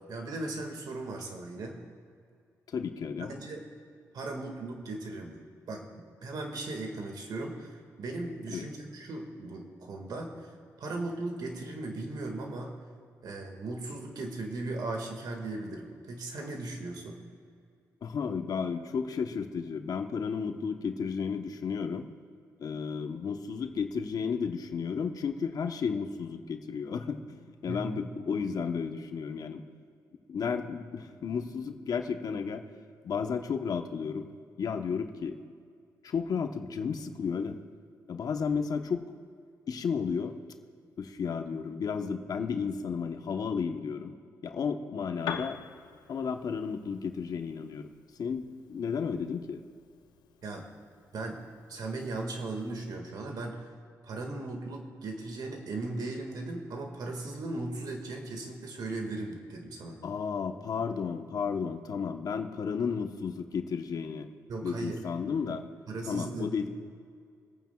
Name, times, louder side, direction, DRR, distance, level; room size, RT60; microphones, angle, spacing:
voice 1, 0.1-1.8 3.2-3.6 4.1-5.4 5.7-10.5 10.8-12.7 13.2-17.2 27.7-28.0 50.4-50.7 51.1-51.4 51.7-53.6 54.0-60.0 64.5-65.0 65.9-66.5, right 2 dB, 70° right, 3 dB, 1.9 m, -37 dB
voice 2, 2.7-3.4 8.5-8.7 18.0-22.1 22.6-29.6 30.3-32.6 33.0-34.3 34.6-35.4 36.0-37.6 38.1-39.0 39.7-40.3 41.0-44.1 44.4-45.6 46.1-47.9 48.2-49.6 60.0-64.3 64.6-65.7 66.1-66.7, left 6 dB, 65° left, 6 dB, 1.0 m, -33 dB
Piano, 45.1-52.9, left 8 dB, 90° left, 0.6 m, -46 dB
27.0 x 9.2 x 2.4 m, 2.3 s
supercardioid pair, 60°, 7 cm